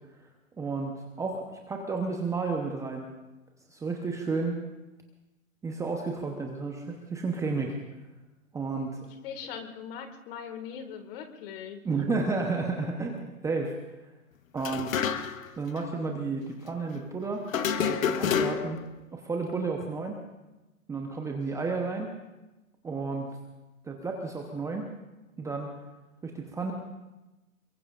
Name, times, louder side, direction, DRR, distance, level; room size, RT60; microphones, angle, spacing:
voice 1, 0.6-3.1 3.7-4.6 5.6-7.8 8.5-9.0 11.8-13.7 14.5-15.0 15.6-17.4 17.8-18.8 19.1-20.2 20.9-22.1 22.8-23.3 23.8-24.9 25.4-25.7 26.2-26.7, right 4 dB, 5° right, 2 dB, 0.9 m, -32 dB
voice 2, 9.2-11.8, left 7 dB, 40° left, 7 dB, 2.0 m, -40 dB
sound 1, 14.6-15.5 15.8-15.9 17.5-18.9, left 7 dB, 65° left, 1.3 m, -28 dB
25.0 x 22.5 x 2.5 m, 1.1 s
hypercardioid pair, 130°, 43 cm